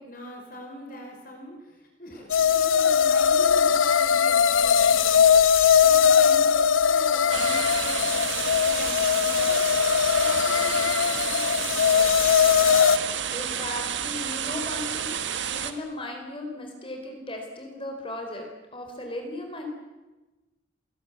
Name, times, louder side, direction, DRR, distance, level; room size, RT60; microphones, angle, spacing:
voice 1, 0.0-5.3 5.8-9.6 10.1-12.8, equal, 45° left, 1 dB, 5.0 m, -42 dB
sound 1, 2.3-13.0, left 7 dB, 85° left, 0.9 m, -20 dB
sound 2, 7.3-15.7, right 8 dB, 65° right, 1.8 m, -30 dB
voice 2, 13.3-15.2 15.5-18.5 18.7-19.6, left 1 dB, 25° left, 3 dB, 4.1 m, -36 dB
28.0 x 19.5 x 8.3 m, 1.1 s
head